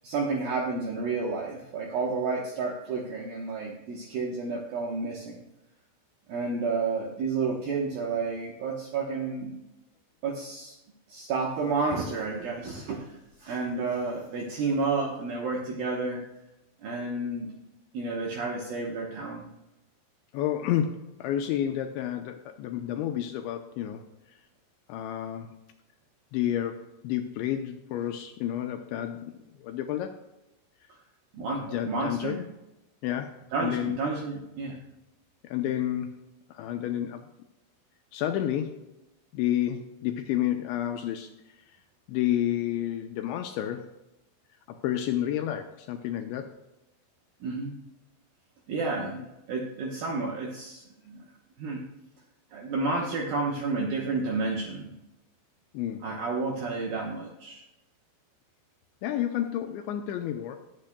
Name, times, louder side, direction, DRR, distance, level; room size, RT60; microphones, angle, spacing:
voice 1, 0.0-5.4 6.3-9.6 10.2-10.8 11.1-16.2 16.8-17.5 17.9-19.5 31.3-32.4 33.5-34.8 47.4-47.8 48.7-49.2 49.5-51.3 51.6-51.8 52.5-54.9 56.0-57.6, right 4 dB, 75° right, 0 dB, 2.2 m, -31 dB
voice 2, 20.3-24.0 24.9-25.6 26.3-29.3 29.6-30.2 31.6-32.4 33.0-34.0 35.4-36.2 36.5-37.3 38.1-38.9 39.3-41.6 42.1-43.9 44.7-46.5 49.0-49.1 55.7-56.1 59.0-60.6, left 11 dB, 80° left, 5 dB, 2.7 m, -30 dB
18.5 x 8.6 x 2.2 m, 0.94 s
omnidirectional pair, 5.7 m